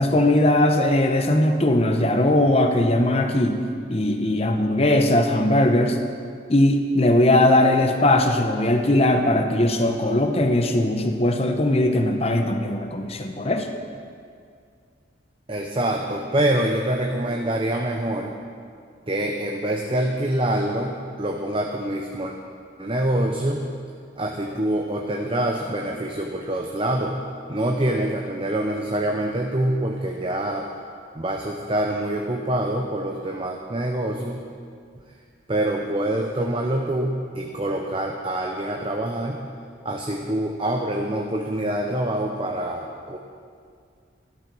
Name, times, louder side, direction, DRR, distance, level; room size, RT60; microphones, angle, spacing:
voice 1, 0.0-3.6 3.9-6.0 6.5-13.7, left 1 dB, 35° left, 5 dB, 0.9 m, -19 dB
voice 2, 15.5-18.4 19.1-22.3 22.8-23.7 24.2-27.2 27.5-30.7 31.1-34.4 35.5-39.4 39.8-43.2, right 1 dB, 30° right, 1 dB, 0.8 m, -25 dB
12.5 x 11.0 x 6.2 m, 2.2 s
head